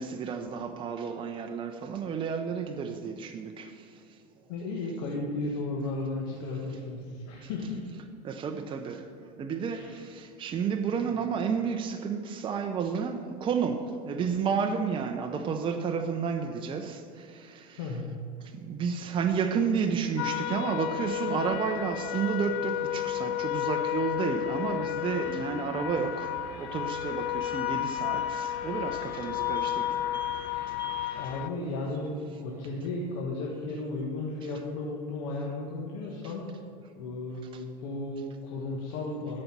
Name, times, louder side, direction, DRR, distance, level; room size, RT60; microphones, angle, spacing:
voice 1, 0.0-3.7 8.2-9.0 9.4-17.8 18.7-30.0 36.2-36.3, right 6 dB, 30° right, 5 dB, 0.7 m, -31 dB
voice 2, 4.5-7.9 9.7-10.0 17.8-18.2 31.1-36.6 37.0-39.4, left 2 dB, 75° left, -2 dB, 1.5 m, -34 dB
sound 1, 20.2-31.5, left 13 dB, 60° left, 0.5 m, -32 dB
sound 2, 25.9-33.2, right 4 dB, 15° right, 1.4 m, -51 dB
12.0 x 5.4 x 6.0 m, 2.4 s
supercardioid pair, 115°, 18 cm